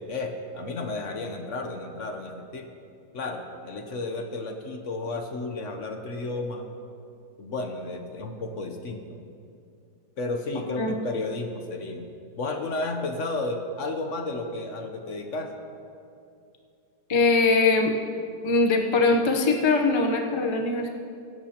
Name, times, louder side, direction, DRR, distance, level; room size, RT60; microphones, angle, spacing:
voice 1, 0.0-2.7 3.1-6.7 7.4-9.0 10.2-12.1 12.4-15.5, left 2 dB, 50° left, 4 dB, 1.0 m, -32 dB
voice 2, 17.1-17.9 18.4-20.9, left 3 dB, 35° left, 2 dB, 0.4 m, -21 dB
21.5 x 11.0 x 2.9 m, 2.5 s
omnidirectional pair, 1.9 m